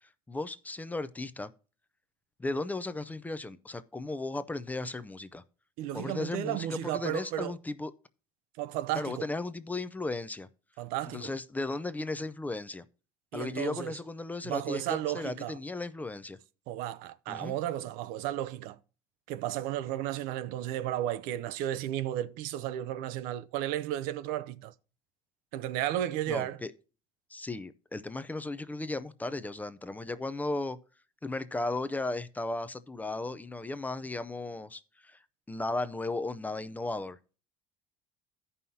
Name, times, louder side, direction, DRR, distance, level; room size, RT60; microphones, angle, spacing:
voice 1, 0.3-1.5 2.4-5.4 5.9-7.9 9.0-10.5 11.1-12.8 13.3-16.4 17.3-17.6 26.3-26.7 27.3-30.8 31.2-35.2 35.5-37.2, left 2 dB, 10° left, 0.5 m, -35 dB
voice 2, 5.8-7.6 8.6-9.3 10.8-11.3 13.3-14.0 14.4-15.6 16.7-18.8 19.3-24.7 25.5-26.6, right 12 dB, 80° right, 0.6 m, -33 dB
15.0 x 5.5 x 2.7 m
cardioid pair, 130°, 15 cm